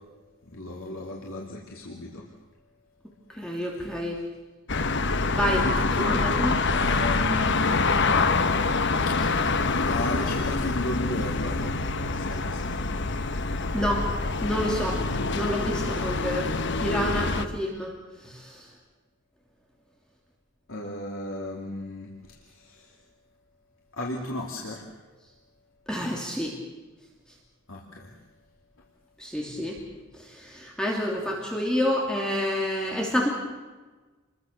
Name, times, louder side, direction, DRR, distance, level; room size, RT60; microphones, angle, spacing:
voice 1, 0.4-2.3 5.4-8.4 9.1-9.2 9.8-11.6 12.1-13.3 20.7-22.9 23.9-24.9 27.7-28.2, left 1 dB, 80° left, -1 dB, 2.9 m, -35 dB
voice 2, 3.3-4.2 5.1-5.7 6.0-6.5 13.7-14.1 14.4-15.0 15.3-16.5 16.8-17.9 18.2-18.7 25.9-26.5 29.2-29.8 30.3-33.3, equal, 5° left, -1 dB, 2.9 m, -28 dB
sound 1, 4.7-17.4, left 3 dB, 60° left, 1.1 m, -26 dB
28.5 x 22.5 x 6.8 m, 1.3 s
head